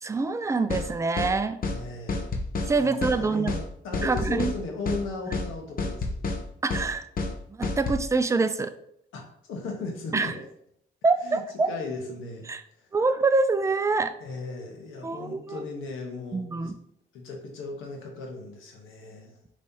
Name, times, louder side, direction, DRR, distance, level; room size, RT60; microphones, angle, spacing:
voice 1, 0.0-1.6 2.7-3.5 4.0-4.5 6.6-7.1 7.5-8.7 10.1-10.3 11.0-11.7 12.5-12.6 12.9-14.1 15.0-15.6 16.3-16.7, right 3 dB, 15° right, 10 dB, 0.3 m, -25 dB
sound 1, 0.7-0.9 1.2-1.3 1.6-1.8 2.1-2.7 3.0-3.2 3.5-3.6 3.9-4.6 4.9-5.0 5.3-5.5 5.8-6.4 6.7-6.9 7.2-7.3 7.6-8.0, left 3 dB, 45° left, 0.8 m, -29 dB
voice 2, 1.6-6.1 9.1-9.2 9.5-10.3 11.2-11.4 11.7-12.5 12.7-12.9 14.2-16.7 17.1-19.4, left 3 dB, 85° left, 1 dB, 1.2 m, -37 dB
5.2 x 3.2 x 2.8 m, 0.70 s
cardioid pair, 90°, 20 cm